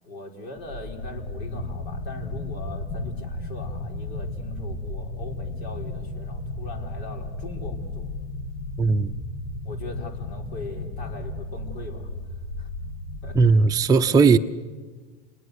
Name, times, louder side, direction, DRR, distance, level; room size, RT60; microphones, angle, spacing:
voice 1, 0.0-8.1 9.6-12.1 12.6-12.7 13.2-13.6, left 2 dB, 70° left, 4.8 m, -40 dB
sound 1, 0.6-13.8, left 2 dB, 85° left, 2.4 m, -34 dB
voice 2, 8.8-9.1 13.3-14.4, right 4 dB, 10° right, 0.7 m, -17 dB
29.0 x 20.5 x 8.3 m
hypercardioid pair, 100°, 33 cm